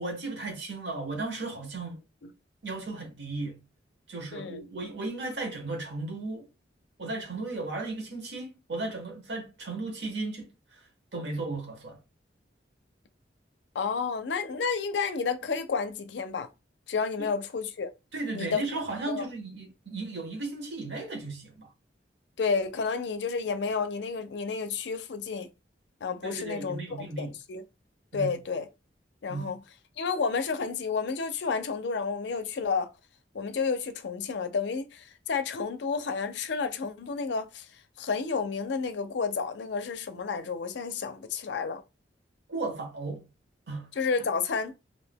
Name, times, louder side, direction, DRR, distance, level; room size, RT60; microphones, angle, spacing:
voice 1, 0.0-2.0 2.6-3.6 4.1-6.5 7.0-12.0 17.2-17.3 18.1-21.7 26.2-27.3 28.1-28.4 29.3-29.5 42.5-43.3 43.7-43.9, right 3 dB, 70° right, 0.9 m, -35 dB
voice 2, 13.8-16.5 16.9-17.9 18.3-18.6 19.1-19.2 22.4-25.5 26.0-27.6 28.1-28.7 29.2-29.6 30.0-32.9 33.3-37.6 38.0-41.8 44.0-44.8, left 5 dB, 70° left, 0.4 m, -31 dB
2.5 x 2.1 x 3.4 m
head